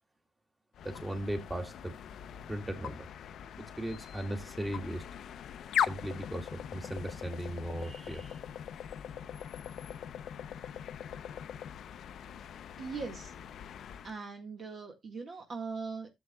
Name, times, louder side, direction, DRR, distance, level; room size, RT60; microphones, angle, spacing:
sound 1, 0.7-14.2, left 9 dB, 70° left, 0.5 m, -40 dB
voice 1, 0.8-1.9 2.5-3.1 3.6-5.0 5.9-8.4, right 1 dB, 15° right, 5 dB, 2.3 m, -37 dB
voice 2, 12.8-13.3 14.0-16.1, right 4 dB, 50° right, 3 dB, 1.6 m, -40 dB
13.0 x 7.6 x 2.3 m, 0.20 s
cardioid pair, 90°, 0 cm